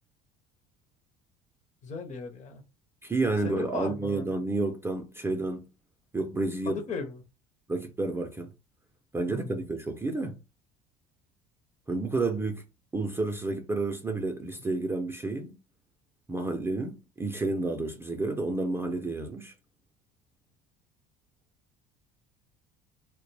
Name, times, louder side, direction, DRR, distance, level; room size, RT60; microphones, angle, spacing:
voice 1, 1.8-2.6 3.4-4.4 5.3-5.4 6.7-7.2 9.3-9.7, left 5 dB, 40° left, 0.7 m, -37 dB
voice 2, 3.0-5.7 6.1-6.8 7.7-8.5 9.1-10.4 11.9-12.6 12.9-15.6 16.3-19.5, right 3 dB, 15° right, 0.4 m, -30 dB
2.1 x 2.0 x 3.2 m
supercardioid pair, 85°, 19 cm